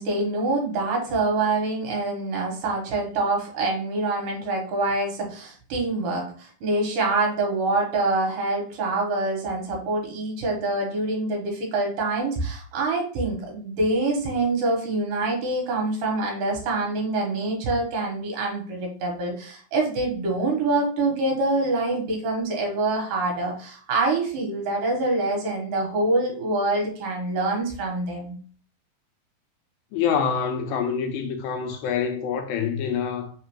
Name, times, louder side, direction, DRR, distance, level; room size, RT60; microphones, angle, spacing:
voice 1, 0.0-28.4, right 2 dB, 70° right, 2.5 m, -25 dB
voice 2, 29.9-33.3, left 7 dB, 80° left, 2.2 m, -26 dB
5.7 x 2.4 x 3.0 m
omnidirectional pair, 4.2 m